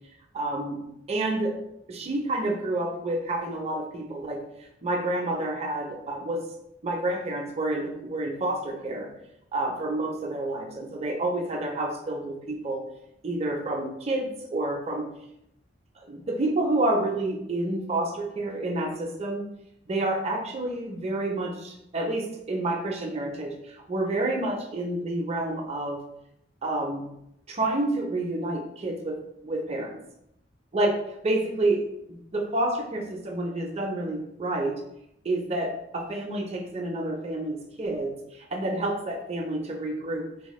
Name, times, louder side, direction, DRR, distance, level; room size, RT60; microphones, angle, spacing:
voice 1, 0.3-0.8 1.1-1.6 1.9-4.4 4.8-6.4 6.8-9.1 9.5-12.8 13.2-15.1 16.1-19.5 19.9-26.0 26.6-27.1 27.5-30.0 30.7-30.9 31.2-31.8 32.1-34.8 35.2-38.2 38.5-40.3, right 2 dB, 35° right, 1 dB, 0.6 m, -29 dB
4.1 x 2.1 x 3.1 m, 0.79 s
head